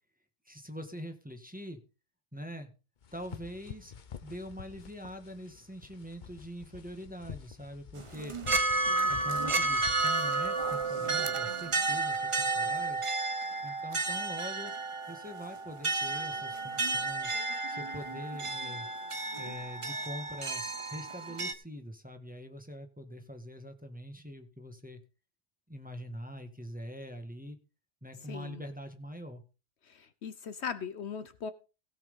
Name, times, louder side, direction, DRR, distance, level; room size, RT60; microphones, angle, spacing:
voice 1, 0.4-1.8 2.3-2.7 3.1-3.9 4.2-8.4 9.1-13.0 13.6-14.7 15.1-17.3 17.7-18.9 19.4-20.6 20.9-25.0 25.7-27.6 28.0-29.4, equal, 5° right, 1.6 m, -43 dB
sound 1, 3.0-11.8, left 7 dB, 45° left, 0.8 m, -49 dB
sound 2, 8.0-21.5, right 3 dB, 30° right, 0.9 m, -32 dB
voice 2, 28.3-28.6 29.9-31.5, left 6 dB, 65° left, 1.1 m, -39 dB
16.5 x 6.0 x 5.5 m
omnidirectional pair, 1.2 m